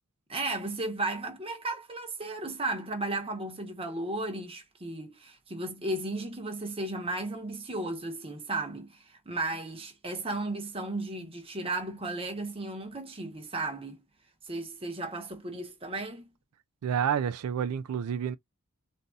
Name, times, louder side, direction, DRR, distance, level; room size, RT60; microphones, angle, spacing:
voice 1, 0.3-14.0 14.4-16.3, right 2 dB, 25° right, 1.0 m, -35 dB
voice 2, 16.8-18.4, right 8 dB, 80° right, 0.3 m, -29 dB
3.9 x 2.6 x 2.3 m
head